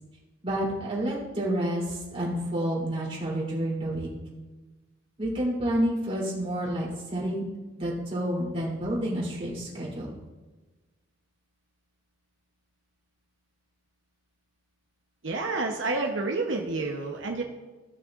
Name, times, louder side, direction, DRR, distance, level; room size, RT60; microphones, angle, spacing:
voice 1, 0.4-4.1 5.2-7.4 7.8-10.1, right 1 dB, 30° right, -6 dB, 3.3 m, -29 dB
voice 2, 15.2-17.4, right 3 dB, 90° right, 2 dB, 0.9 m, -29 dB
15.5 x 6.7 x 2.5 m, 1.2 s
head